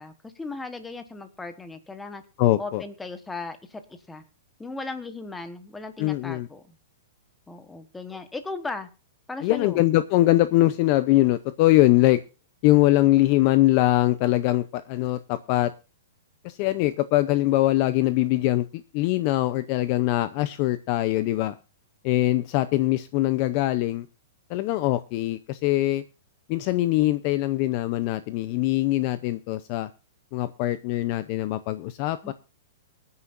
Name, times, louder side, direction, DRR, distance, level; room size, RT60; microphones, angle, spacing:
voice 1, 0.0-2.2 2.6-3.8 4.1-4.2 4.6-6.7 7.5-8.9 9.3-9.8 32.2-32.3, left 3 dB, 5° left, 9 dB, 1.2 m, -37 dB
voice 2, 2.4-2.8 6.0-6.5 9.4-12.2 12.6-15.7 16.4-21.5 22.0-24.1 24.5-26.0 26.5-29.9 30.3-32.3, left 16 dB, 30° left, 13 dB, 0.6 m, -22 dB
24.0 x 9.6 x 2.5 m, 0.32 s
hypercardioid pair, 175°, 0 cm